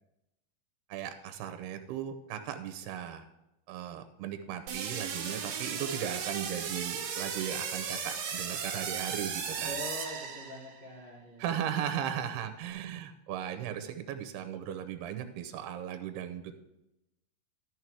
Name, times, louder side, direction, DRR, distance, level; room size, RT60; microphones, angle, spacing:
voice 1, 0.9-3.3 3.7-9.7 11.4-16.6, right 9 dB, 85° right, 8 dB, 2.9 m, -37 dB
sound 1, 4.7-10.9, right 7 dB, 70° right, 3.0 m, -36 dB
voice 2, 9.6-11.7 11.9-12.2, left 1 dB, 35° left, -3 dB, 0.9 m, -43 dB
12.5 x 6.5 x 4.6 m, 0.87 s
omnidirectional pair, 4.6 m